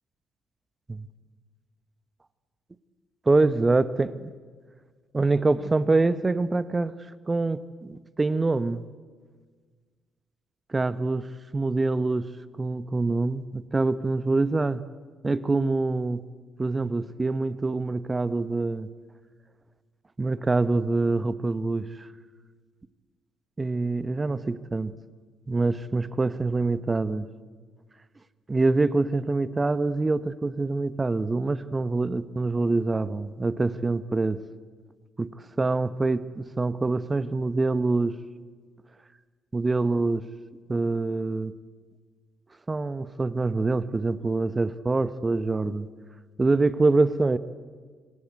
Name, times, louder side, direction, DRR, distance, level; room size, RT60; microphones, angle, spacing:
voice 1, 3.3-4.1 5.1-6.9 7.3-8.8 10.7-11.3 11.5-12.3 12.6-14.8 15.2-16.2 16.6-18.9 20.2-22.1 23.6-24.9 25.5-27.3 28.5-34.4 35.2-38.2 39.5-40.3 40.7-41.5 42.7-45.9 46.4-47.4, right 3 dB, 25° right, 15 dB, 1.1 m, -25 dB
26.5 x 25.5 x 8.2 m, 1.5 s
figure-of-eight pair, 45°, 0 cm